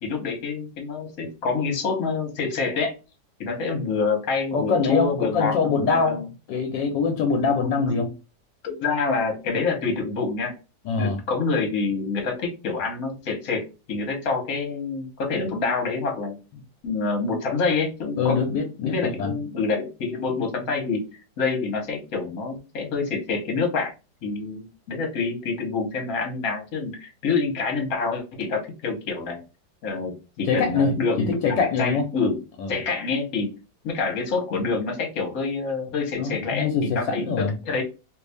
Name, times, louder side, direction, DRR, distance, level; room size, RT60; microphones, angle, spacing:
voice 1, 0.0-3.0 3.4-6.2 7.6-8.0 8.6-10.5 11.0-16.4 16.8-18.4 18.8-21.1 21.4-23.9 24.2-29.4 29.8-32.4 32.7-33.5 33.8-37.8, left 4 dB, 55° left, 1.4 m, -27 dB
voice 2, 4.5-6.2 6.5-8.1 10.8-11.2 18.2-19.4 30.5-30.9 31.2-32.0 32.6-32.8 36.2-37.5, left 5 dB, 80° left, 1.3 m, -23 dB
3.2 x 2.6 x 3.4 m
omnidirectional pair, 1.9 m